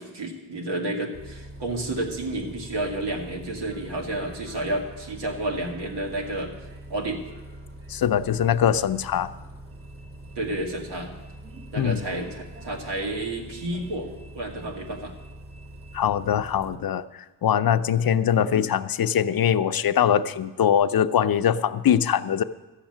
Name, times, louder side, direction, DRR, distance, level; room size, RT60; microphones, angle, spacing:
voice 1, 0.0-6.5 6.9-7.2 10.4-11.1 11.7-14.1 14.3-15.1 18.3-18.5, right 1 dB, 90° right, 1 dB, 2.1 m, -30 dB
Bus, 1.1-16.8, right 1 dB, 35° right, 2.0 m, -43 dB
voice 2, 7.9-9.3 11.8-12.0 15.9-17.0 17.4-22.4, left 9 dB, 60° left, 12 dB, 0.6 m, -22 dB
13.0 x 7.3 x 8.9 m, 1.1 s
cardioid pair, 70°, 40 cm